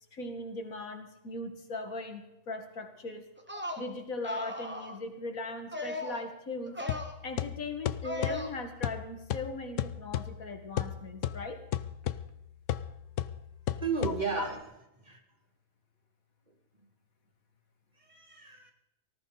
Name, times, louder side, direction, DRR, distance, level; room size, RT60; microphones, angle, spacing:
voice 1, 0.1-3.2 3.8-6.8 7.2-11.6 14.0-14.5, left 3 dB, 90° left, 5 dB, 2.4 m, -39 dB
sound 1, 3.4-3.8 4.2-5.0 5.7-6.2 6.7-7.1 8.0-8.5, left 1 dB, 10° right, 1.7 m, -37 dB
sound 2, 6.9-14.6, left 11 dB, 70° left, 1.0 m, -36 dB
voice 2, 13.8-14.6 15.0-15.2 18.0-18.7, right 5 dB, 30° right, 2 dB, 2.5 m, -33 dB
19.0 x 14.5 x 4.1 m, 0.87 s
omnidirectional pair, 1.4 m